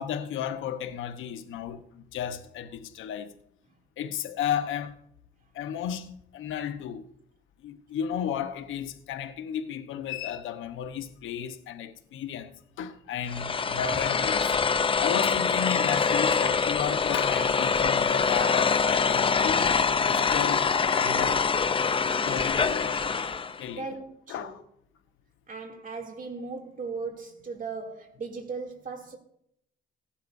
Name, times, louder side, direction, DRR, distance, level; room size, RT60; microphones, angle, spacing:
voice 1, 0.0-3.3 4.0-5.0 5.5-7.0 7.6-14.6 15.0-19.7 20.1-21.4 22.2-23.3 23.6-23.9 24.3-24.6, left 9 dB, 80° left, 1.1 m, -33 dB
sound 1, 13.3-23.6, left 5 dB, 25° left, 0.6 m, -25 dB
voice 2, 23.7-24.5 25.5-29.2, right 4 dB, 45° right, 2.9 m, -37 dB
17.0 x 11.5 x 2.7 m
cardioid pair, 90°, 20 cm